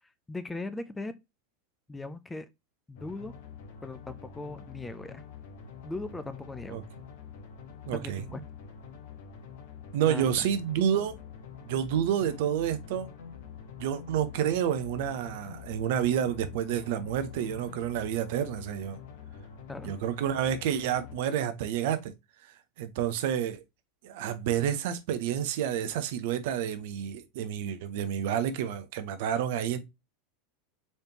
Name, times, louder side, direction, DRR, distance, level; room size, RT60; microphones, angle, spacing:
voice 1, 0.3-1.1 1.9-2.5 2.9-3.4 3.8-5.2 5.8-6.8 7.9-8.4 10.1-10.5 19.7-19.9, left 2 dB, 10° left, 0.5 m, -39 dB
sound 1, 3.0-21.2, left 7 dB, 60° left, 0.9 m, -46 dB
voice 2, 7.9-8.2 9.9-11.2 11.6-13.1 13.8-19.0 19.8-22.1 22.8-23.6 24.0-29.8, right 9 dB, 60° right, 0.6 m, -29 dB
4.2 x 3.3 x 2.7 m
figure-of-eight pair, 85°, 0 cm